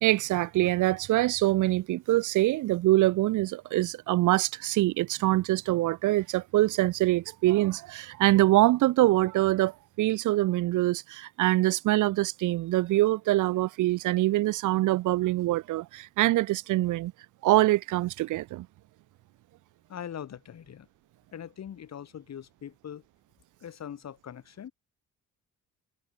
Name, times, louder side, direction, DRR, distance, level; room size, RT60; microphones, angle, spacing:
voice 1, 0.0-17.1 17.4-18.7, right 17 dB, 90° right, 1.4 m, -24 dB
voice 2, 19.9-20.9 21.3-23.0 23.6-24.7, left 9 dB, 60° left, 7.1 m, -41 dB
cardioid pair, 90°, 30 cm